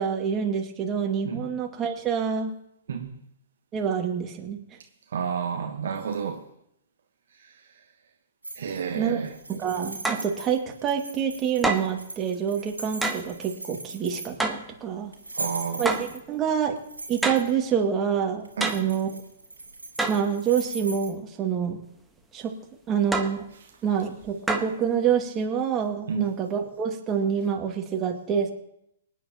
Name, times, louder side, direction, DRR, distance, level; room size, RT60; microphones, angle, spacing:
voice 1, 0.0-2.5 3.7-4.6 8.9-9.2 9.5-15.1 15.8-16.7 17.1-19.1 20.1-21.8 22.3-22.5 22.9-23.4 23.8-28.5, right 7 dB, 25° right, 2.1 m, -27 dB
voice 2, 2.9-3.2 5.1-6.4 7.4-7.6 8.6-9.4 15.3-15.8 18.6-18.8 26.1-26.3, right 7 dB, 60° right, 1.3 m, -30 dB
sound 1, 8.4-8.9 9.2-14.5 15.1-16.3 16.8-17.5 18.4-21.1, right 2 dB, 85° right, 2.4 m, -39 dB
sound 2, 10.0-10.3 11.6-12.0 13.0-13.3 14.4-14.7 15.8-16.1 17.2-17.5 18.6-18.9 20.0-20.3 23.1-23.4 24.5-24.8, right 2 dB, 5° right, 1.2 m, -27 dB
25.0 x 9.4 x 3.0 m
figure-of-eight pair, 115°, 0 cm